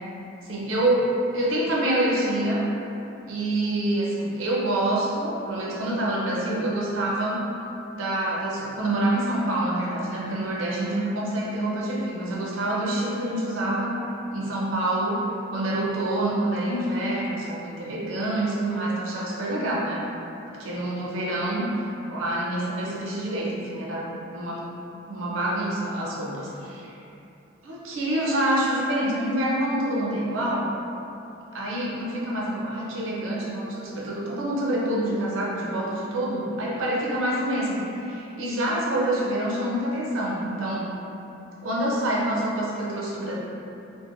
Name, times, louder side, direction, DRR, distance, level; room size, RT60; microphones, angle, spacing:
voice 1, 0.4-2.7 3.3-7.4 7.9-14.0 14.3-15.2 15.5-20.0 20.5-24.7 25.1-27.0 27.6-30.7 31.5-40.9 41.6-43.3, right 1 dB, 90° right, -4 dB, 0.6 m, -26 dB
2.5 x 2.0 x 2.9 m, 2.8 s
head